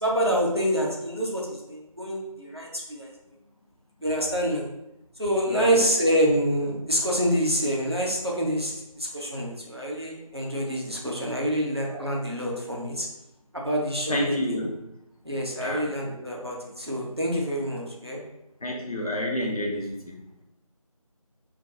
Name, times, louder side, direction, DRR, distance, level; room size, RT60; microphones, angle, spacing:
voice 1, 0.0-3.1 4.0-4.7 5.2-13.1 13.5-14.6 15.2-18.2, equal, 45° right, -2 dB, 0.5 m, -27 dB
voice 2, 5.5-5.8 11.9-12.1 14.1-14.8 15.6-15.9 18.6-20.4, left 1 dB, 75° left, -1 dB, 0.7 m, -29 dB
2.2 x 2.2 x 2.6 m, 0.86 s
figure-of-eight pair, 180°, 19 cm